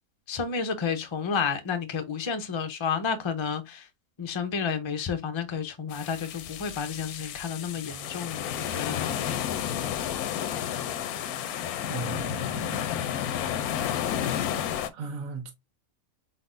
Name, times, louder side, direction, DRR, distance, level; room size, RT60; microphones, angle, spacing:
voice 1, 0.3-3.9 4.2-9.2, left 6 dB, 35° left, 0.4 m, -31 dB
sound 1, 5.9-14.9, left 9 dB, 85° left, 1.1 m, -31 dB
voice 2, 11.9-12.8 14.3-14.5 14.9-15.5, right 4 dB, 65° right, 1.4 m, -37 dB
4.2 x 3.9 x 2.5 m
omnidirectional pair, 1.6 m